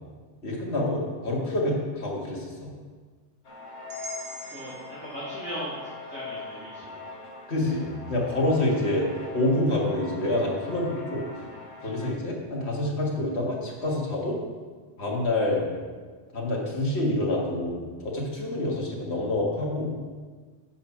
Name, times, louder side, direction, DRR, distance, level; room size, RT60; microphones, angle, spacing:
voice 1, 0.4-2.7 7.5-9.1 9.3-11.3 11.8-14.4 15.0-15.6 16.3-19.9, left 1 dB, 70° left, -3 dB, 2.1 m, -27 dB
sound 1, 3.4-12.1, left 4 dB, 85° left, 1.7 m, -42 dB
sound 2, 3.9-7.9, right 1 dB, 80° right, 1.9 m, -45 dB
voice 2, 4.5-7.1, equal, 10° left, -9 dB, 2.0 m, -38 dB
8.5 x 6.3 x 5.8 m, 1.5 s
omnidirectional pair, 1.2 m